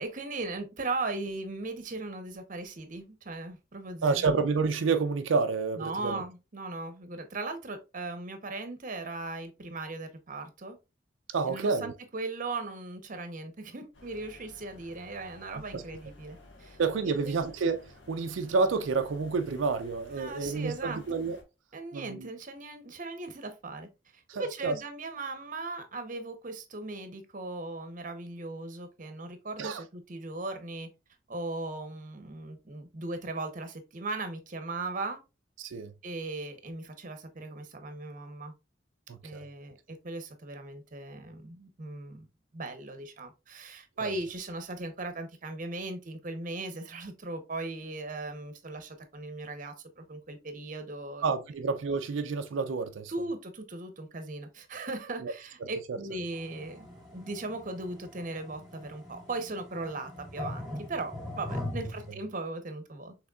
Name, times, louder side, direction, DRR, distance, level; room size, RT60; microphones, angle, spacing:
voice 1, 0.0-4.3 5.8-10.8 11.5-16.8 17.1-17.4 20.1-21.0 21.7-23.9 24.3-30.9 31.3-35.2 36.0-38.5 39.2-42.3 42.5-51.2 53.1-63.1, right 2 dB, 45° right, 0.8 m, -38 dB
voice 2, 4.0-6.2 11.3-11.9 15.7-15.8 16.8-21.4 21.9-22.3 24.3-24.8 29.6-29.8 35.6-35.9 39.1-39.4 44.0-44.1 51.2-53.1 55.2-55.3 55.6-56.0, right 4 dB, 90° right, 0.4 m, -29 dB
sound 1, 13.9-21.4, left 2 dB, 70° left, 1.3 m, -54 dB
sound 2, 56.3-62.1, left 1 dB, ahead, 2.2 m, -41 dB
6.3 x 3.3 x 2.3 m
head